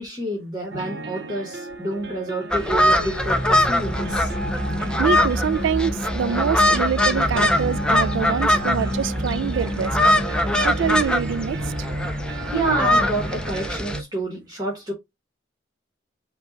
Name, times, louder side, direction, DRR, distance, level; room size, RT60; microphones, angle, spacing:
voice 1, 0.0-4.4 12.5-14.9, right 2 dB, 20° right, 1.2 m, -28 dB
sound 1, 0.7-14.0, right 1 dB, 65° right, 0.8 m, -33 dB
sound 2, 2.5-14.0, left 1 dB, 5° left, 0.4 m, -22 dB
sound 3, 3.8-11.1, equal, 25° left, 1.9 m, -29 dB
voice 2, 5.0-10.0 10.6-11.9, right 7 dB, 85° right, 0.3 m, -25 dB
5.4 x 2.2 x 3.8 m
head